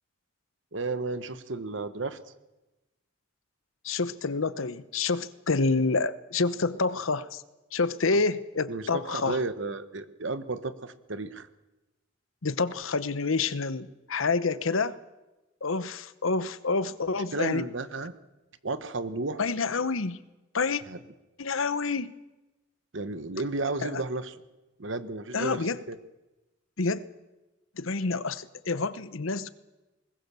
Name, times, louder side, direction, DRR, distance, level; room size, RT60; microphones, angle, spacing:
voice 1, 0.7-2.2 8.7-11.5 17.3-18.1 18.6-19.4 20.9-21.0 22.9-24.3 24.8-25.6 25.9-26.0, right 3 dB, 65° right, 12 dB, 1.2 m, -33 dB
voice 2, 3.8-7.4 7.7-9.4 12.4-14.9 15.6-17.6 19.4-20.2 20.5-20.8 21.4-22.1 23.8-24.0 25.3-25.8 26.8-27.0 27.8-29.5, left 4 dB, 80° left, 15 dB, 0.9 m, -28 dB
21.0 x 20.0 x 6.9 m, 1.1 s
head